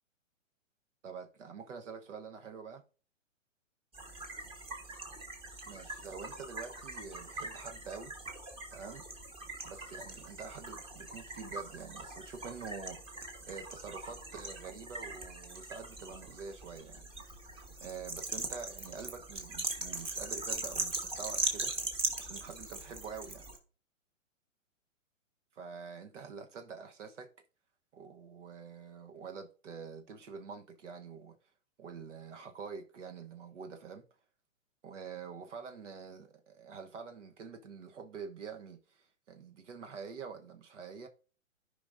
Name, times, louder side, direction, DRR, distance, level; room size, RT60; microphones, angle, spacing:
voice 1, 1.0-2.8 5.7-8.1 8.7-9.0 9.6-13.0 13.5-17.0 17.8-21.7 22.2-23.4 25.5-27.3 27.9-31.4 31.8-34.0 34.8-41.1, right 5 dB, 65° right, 1.3 m, -46 dB
sound 1, 3.9-23.6, right 2 dB, 15° right, 1.2 m, -41 dB
14.5 x 5.2 x 2.6 m
hypercardioid pair, 125°, 39 cm